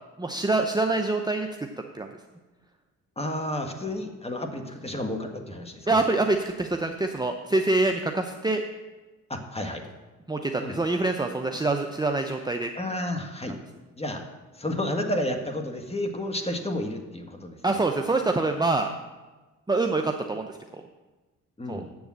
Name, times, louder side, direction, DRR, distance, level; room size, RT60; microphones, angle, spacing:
voice 1, 0.2-1.5 1.9-2.1 5.9-8.6 10.3-12.7 17.6-18.9 19.7-20.6 21.7-21.8, right 2 dB, 10° right, 4 dB, 0.7 m, -25 dB
voice 2, 3.2-6.0 9.3-9.8 10.6-10.8 12.8-13.6 14.0-14.3 14.5-17.8 21.6-21.9, left 1 dB, 15° left, 4 dB, 1.7 m, -31 dB
7.8 x 7.0 x 7.6 m, 1.2 s
supercardioid pair, 55°, 36 cm